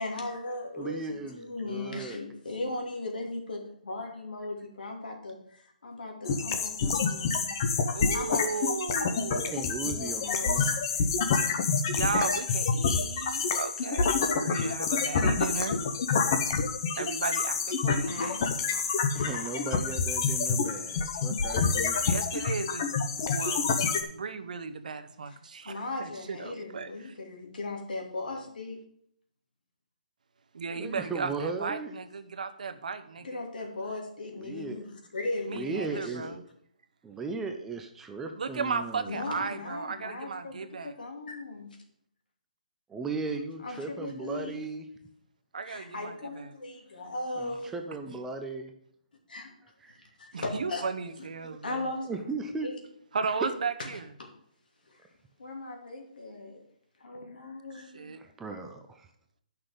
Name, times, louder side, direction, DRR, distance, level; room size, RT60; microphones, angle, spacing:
voice 1, 0.0-7.8 8.1-8.7 9.0-9.6 9.8-11.1 18.1-18.4 18.7-18.8 19.1-19.6 25.3-25.4 25.6-28.8 33.2-36.4 39.1-41.7 43.6-44.6 45.7-47.7 49.3-49.5 49.9-50.8 51.2-51.3 51.6-52.2 52.6-52.8 54.2-54.3 54.9-55.0 55.4-56.6 57.0-58.2, left 2 dB, 90° left, 1 dB, 2.7 m, -38 dB
voice 2, 0.8-2.2 9.3-10.8 19.1-22.0 30.8-31.9 34.3-34.9 35.5-36.3 37.0-39.2 42.9-44.9 47.4-48.7 49.8-50.1 52.1-52.7 53.4-53.5 58.2-59.1, right 4 dB, 5° right, 5 dB, 0.4 m, -37 dB
sound 1, 6.3-24.0, left 5 dB, 30° left, 0.7 m, -28 dB
voice 3, 7.9-9.5 11.9-15.8 17.0-18.4 22.1-23.8 24.1-26.9 30.5-33.4 35.5-36.4 38.3-40.9 45.5-46.5 50.3-51.7 53.1-54.0 57.9-58.2, right 5 dB, 65° right, 9 dB, 0.9 m, -35 dB
9.8 x 5.9 x 5.1 m, 0.69 s
hypercardioid pair, 175°, 5 cm